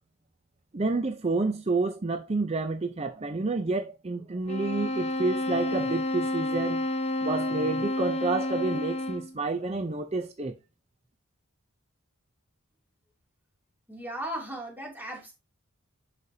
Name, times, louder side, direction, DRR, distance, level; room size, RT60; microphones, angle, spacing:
voice 1, 0.7-6.9 7.2-10.5, right 3 dB, 30° right, 0.5 m, -29 dB
sound 1, 4.5-9.4, left 1 dB, 30° left, 0.6 m, -30 dB
voice 2, 13.9-15.3, right 1 dB, 10° right, 2.6 m, -36 dB
10.5 x 5.0 x 2.7 m
head